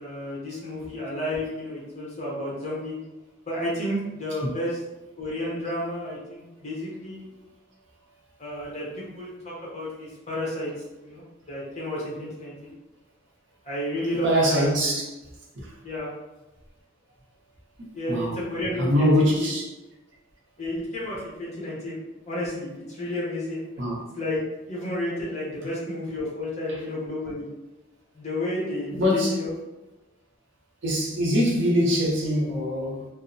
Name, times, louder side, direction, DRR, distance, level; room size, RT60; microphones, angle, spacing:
voice 1, 0.0-3.0 3.5-4.8 5.2-7.3 8.4-12.7 13.6-14.7 15.8-16.1 17.9-19.1 19.4-19.5 20.6-22.0 22.3-23.8 24.2-27.5 28.1-29.5, left 1 dB, 35° left, -6 dB, 0.8 m, -31 dB
voice 2, 14.2-15.0 15.5-15.7 18.1-18.4 18.8-19.6 23.8-24.0 26.7-26.8 28.9-29.3 30.8-33.1, equal, 60° right, -3 dB, 0.6 m, -23 dB
2.7 x 2.0 x 2.5 m, 0.99 s
head